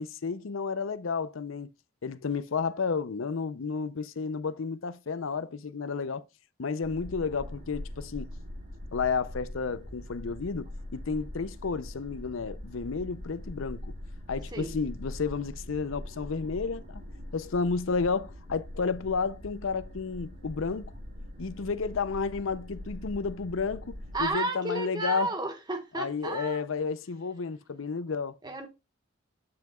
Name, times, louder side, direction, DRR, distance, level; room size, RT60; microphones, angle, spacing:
voice 1, 0.0-1.7 2.0-6.2 6.6-8.3 8.9-13.9 14.3-17.0 17.3-20.9 21.4-25.3 26.0-28.4, left 5 dB, 80° left, 0.6 m, -32 dB
sound 1, 6.8-24.3, left 1 dB, 40° right, 2.8 m, -42 dB
voice 2, 24.1-26.6 28.4-28.7, right 2 dB, 20° right, 1.4 m, -32 dB
10.5 x 5.7 x 2.3 m
head